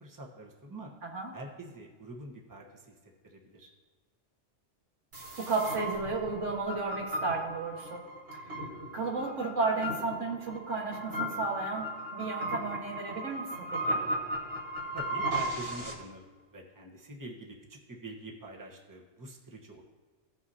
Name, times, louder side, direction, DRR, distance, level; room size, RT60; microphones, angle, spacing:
voice 1, 0.0-0.9 1.3-2.9 3.2-3.7 14.9-19.8, right 1 dB, 15° right, -1 dB, 1.1 m, -45 dB
voice 2, 1.0-1.3 5.4-8.0 8.9-13.5 13.9-14.0, right 4 dB, 90° right, -1 dB, 1.9 m, -33 dB
sound 1, 5.1-15.9, right 1 dB, 55° right, 1.8 m, -36 dB
16.0 x 6.0 x 2.8 m, 1.4 s
omnidirectional pair, 1.2 m